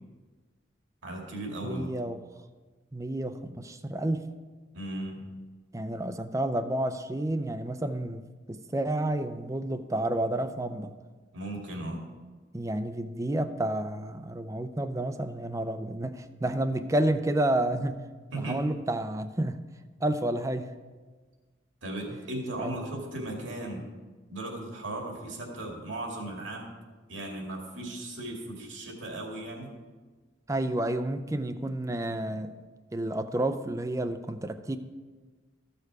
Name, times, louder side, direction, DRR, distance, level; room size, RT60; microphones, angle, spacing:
voice 1, 1.0-1.9 4.7-5.3 11.3-12.0 18.3-18.6 21.8-23.9 24.3-26.7 27.1-29.7, right 1 dB, 85° right, 0 dB, 2.3 m, -36 dB
voice 2, 1.6-2.2 2.9-4.2 5.7-8.2 8.5-10.9 12.5-18.0 18.3-19.6 20.0-20.7 22.6-22.9 30.5-32.6 32.9-34.8, right 1 dB, 15° right, 10 dB, 0.5 m, -30 dB
13.5 x 6.7 x 4.8 m, 1.3 s
head